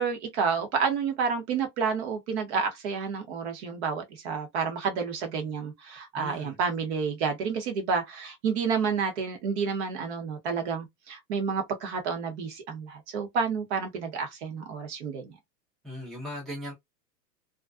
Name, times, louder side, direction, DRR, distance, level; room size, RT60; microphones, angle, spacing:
voice 1, 0.0-15.3, right 5 dB, 45° right, 0.8 m, -30 dB
voice 2, 6.1-6.6 15.8-16.7, left 1 dB, ahead, 0.5 m, -38 dB
2.4 x 2.1 x 2.4 m
hypercardioid pair, 135°, 49 cm